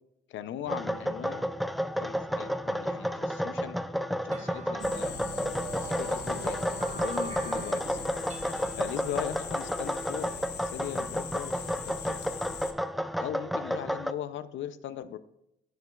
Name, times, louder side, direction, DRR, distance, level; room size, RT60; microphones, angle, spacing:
voice 1, 0.3-1.4 2.0-3.8 4.1-6.6 6.9-8.0 8.8-10.3 10.6-12.3 13.2-15.2, left 10 dB, 75° left, 13 dB, 0.6 m, -39 dB
sound 1, 0.7-14.1, equal, ahead, 0.4 m, -32 dB
sound 2, 4.3-11.2, right 2 dB, 35° right, 1.0 m, -45 dB
sound 3, 4.8-12.7, left 7 dB, 55° left, 1.0 m, -41 dB
16.5 x 7.5 x 2.4 m, 0.84 s
cardioid pair, 90°, 20 cm